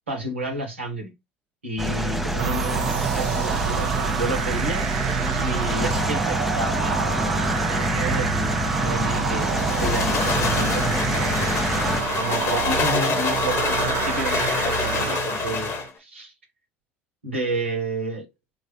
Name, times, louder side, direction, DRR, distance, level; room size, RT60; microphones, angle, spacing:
voice 1, 0.1-1.1 1.6-4.8 5.4-16.3 17.2-18.3, right 1 dB, 85° right, 1.0 m, -31 dB
sound 1, 1.8-12.0, equal, 5° right, 0.5 m, -26 dB
sound 2, 2.4-15.9, right 10 dB, 60° right, 0.5 m, -28 dB
sound 3, 9.4-15.9, left 5 dB, 45° left, 1.0 m, -26 dB
3.8 x 2.3 x 3.2 m
figure-of-eight pair, 65°, 6 cm